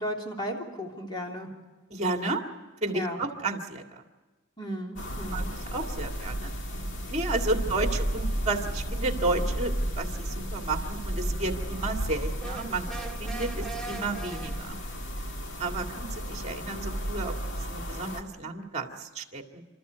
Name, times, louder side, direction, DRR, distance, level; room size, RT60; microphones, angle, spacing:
voice 1, 0.0-1.5 2.9-3.2 4.6-5.5, equal, 20° left, 0 dB, 3.3 m, -35 dB
voice 2, 1.9-2.4 2.8-4.0 5.3-5.4 5.7-6.5 7.1-12.9 13.2-14.8 15.6-19.6, right 2 dB, 35° right, 4 dB, 2.0 m, -32 dB
sound 1, 5.0-18.2, equal, 60° left, 2.0 m, -33 dB
sound 2, 12.4-15.0, right 3 dB, 5° left, 1.7 m, -40 dB
30.0 x 13.5 x 8.1 m, 1.2 s
head